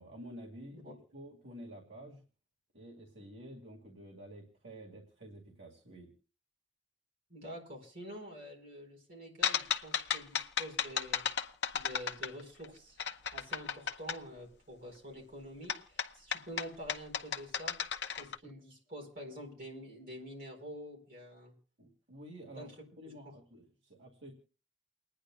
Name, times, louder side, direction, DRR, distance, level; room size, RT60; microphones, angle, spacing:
voice 1, 0.0-2.2 2.7-6.1 18.4-18.5 21.8-22.7 23.0-24.3, right 1 dB, 70° right, -2 dB, 2.2 m, -50 dB
voice 2, 7.3-11.2 11.7-13.0 13.3-17.8 18.2-21.5 22.6-22.7, equal, 45° right, 0 dB, 4.6 m, -47 dB
sound 1, 9.4-12.7 13.0-14.2 15.7-18.4, left 7 dB, 60° left, 0.8 m, -34 dB
29.5 x 10.0 x 2.4 m, 0.36 s
head